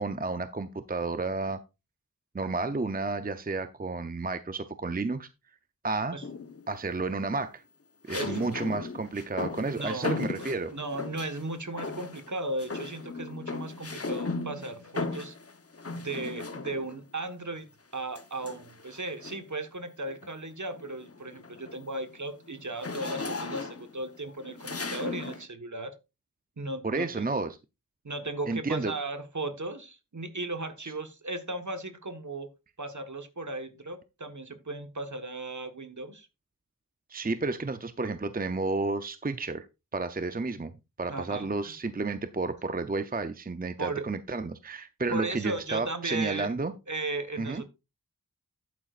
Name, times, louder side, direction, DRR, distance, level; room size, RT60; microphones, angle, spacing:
voice 1, 0.0-1.6 2.3-5.3 5.8-6.2 6.7-7.6 8.1-10.7 26.8-27.6 28.5-28.9 30.8-30.9 37.1-39.6 39.9-40.7 41.0-46.7 47.4-47.6, right 3 dB, 25° right, 0.6 m, -31 dB
sound 1, 6.2-6.7 8.1-11.4 11.8-12.3 12.6-17.0 18.2-19.5 20.1-20.3 20.7-25.5, left 3 dB, 40° left, 1.0 m, -37 dB
voice 2, 8.1-8.5 9.7-15.4 15.9-25.9 26.6-27.4 28.0-32.5 32.8-36.3 41.1-41.7 43.8-44.1 45.1-46.5 46.9-47.6, right 2 dB, 55° right, 1.4 m, -36 dB
11.0 x 9.2 x 2.5 m
wide cardioid pair, 55°, 35 cm